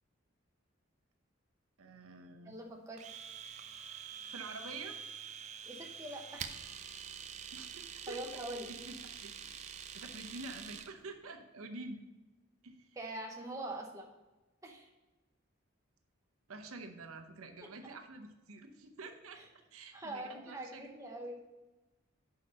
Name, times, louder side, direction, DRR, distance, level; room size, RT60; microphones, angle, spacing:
voice 1, 1.8-2.6 4.2-5.0 7.5-8.3 8.7-12.0 12.6-12.9 16.5-19.4 19.7-20.9, right 3 dB, 90° right, 5 dB, 0.7 m, -48 dB
voice 2, 2.4-3.1 5.7-6.6 8.1-8.7 13.0-14.1 14.6-14.9 19.4-19.5 19.9-21.4, right 1 dB, 15° right, 0 dB, 0.8 m, -43 dB
Domestic sounds home sounds, 3.0-10.9, right 7 dB, 35° right, 0.3 m, -46 dB
6.0 x 4.8 x 6.3 m, 1.1 s
head